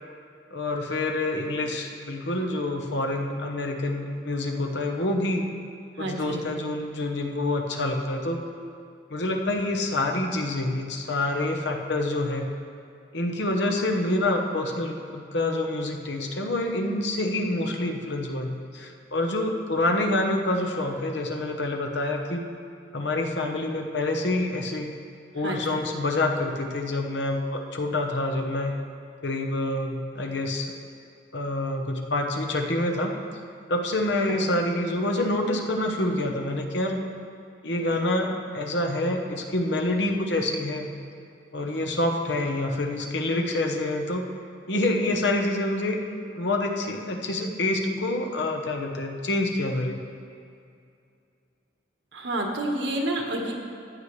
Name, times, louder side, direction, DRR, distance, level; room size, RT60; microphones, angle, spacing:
voice 1, 0.5-5.5 6.0-8.4 9.1-12.5 13.1-22.4 22.9-24.9 25.3-28.7 29.2-30.7 31.3-33.1 33.7-37.0 37.6-40.9 41.5-44.3 44.7-46.0 46.3-50.0, left 2 dB, 75° left, 2 dB, 1.0 m, -27 dB
voice 2, 6.0-6.4 25.4-25.8 52.1-53.5, right 1 dB, 80° right, 1 dB, 1.4 m, -29 dB
15.0 x 8.2 x 3.2 m, 2.4 s
head